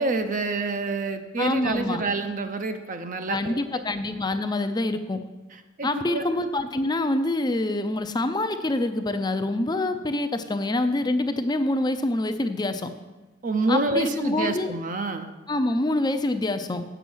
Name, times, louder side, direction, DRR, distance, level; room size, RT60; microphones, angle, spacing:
voice 1, 0.0-3.6 5.8-6.3 13.4-15.3, right 3 dB, 45° right, 7 dB, 0.6 m, -27 dB
voice 2, 1.4-2.0 3.3-5.2 5.8-12.9 13.7-14.7 15.5-16.8, left 2 dB, 20° left, 9 dB, 0.5 m, -26 dB
8.4 x 6.9 x 6.2 m, 1.2 s
head